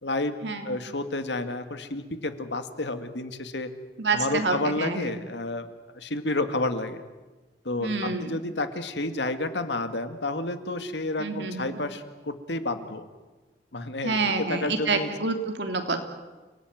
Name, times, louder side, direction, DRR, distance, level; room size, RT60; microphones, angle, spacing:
voice 1, 0.0-0.4 0.6-3.7 4.1-5.7 5.9-7.0 7.6-13.1 13.7-15.1, left 2 dB, 85° left, 8 dB, 2.1 m, -30 dB
voice 2, 4.0-5.0 7.8-8.4 11.2-11.8 14.0-16.0, right 4 dB, 85° right, 5 dB, 3.1 m, -28 dB
29.5 x 18.5 x 9.4 m, 1.2 s
head